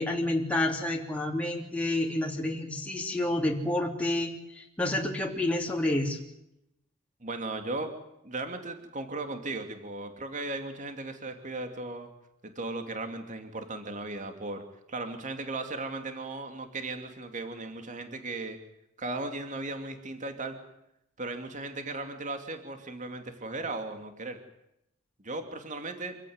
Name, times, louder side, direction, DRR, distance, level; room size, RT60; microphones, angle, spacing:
voice 1, 0.0-6.2, left 1 dB, 5° left, -1 dB, 3.2 m, -29 dB
voice 2, 7.2-7.9 8.2-12.1 12.4-18.6 19.0-20.6 21.2-24.4 25.2-26.2, right 2 dB, 35° right, 6 dB, 2.6 m, -36 dB
27.0 x 16.0 x 9.5 m, 0.81 s
head